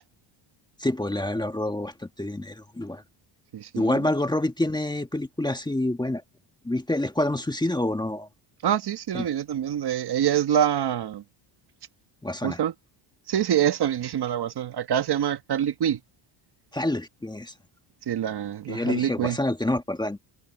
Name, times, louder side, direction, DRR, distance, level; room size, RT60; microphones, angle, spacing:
voice 1, 0.8-3.0 3.7-6.2 6.6-8.3 9.1-9.2 12.2-12.6 16.7-17.5 18.7-20.2, left 1 dB, 10° left, 1.5 m, -27 dB
voice 2, 3.5-4.0 8.6-11.2 12.4-12.7 13.3-16.0 18.1-19.4, right 10 dB, 50° right, 1.5 m, -25 dB
cardioid pair, 100°, 50 cm